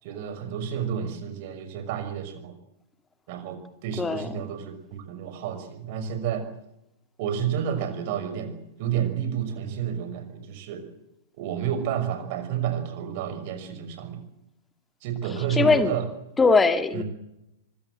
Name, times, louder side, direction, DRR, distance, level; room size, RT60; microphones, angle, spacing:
voice 1, 0.0-2.5 3.3-6.5 7.2-10.8 11.4-14.2 15.0-16.0 16.9-17.0, right 9 dB, 45° right, 8 dB, 5.9 m, -30 dB
voice 2, 4.0-4.3 15.5-15.9 16.4-17.0, left 4 dB, 15° left, 10 dB, 2.0 m, -20 dB
24.5 x 22.5 x 7.9 m, 0.84 s
figure-of-eight pair, 105°, 0 cm